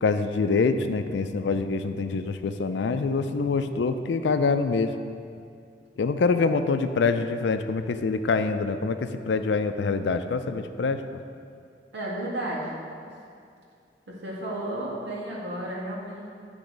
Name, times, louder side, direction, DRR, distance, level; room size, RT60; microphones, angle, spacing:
voice 1, 0.0-4.9 6.0-11.0, left 4 dB, 80° left, 9 dB, 0.4 m, -25 dB
voice 2, 11.9-12.8 14.2-16.3, right 1 dB, 85° right, -5 dB, 1.8 m, -32 dB
10.0 x 3.5 x 5.2 m, 2.4 s
head